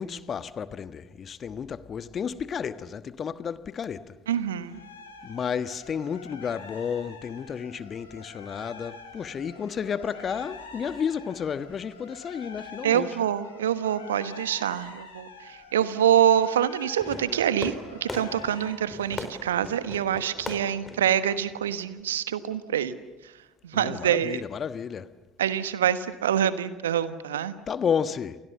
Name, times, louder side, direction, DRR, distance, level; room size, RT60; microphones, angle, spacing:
voice 1, 0.0-4.1 5.2-13.1 23.7-25.1 27.7-28.4, left 7 dB, 35° left, 1.3 m, -32 dB
voice 2, 4.3-4.8 12.8-17.7 18.0-22.9 23.6-24.4 25.4-27.6, right 10 dB, 75° right, 1.2 m, -25 dB
sound 1, 4.6-18.7, left 3 dB, 80° left, 5.2 m, -46 dB
Fireworks, 17.0-22.0, left 2 dB, 20° left, 4.4 m, -40 dB
29.0 x 29.0 x 6.9 m
figure-of-eight pair, 60°, 0 cm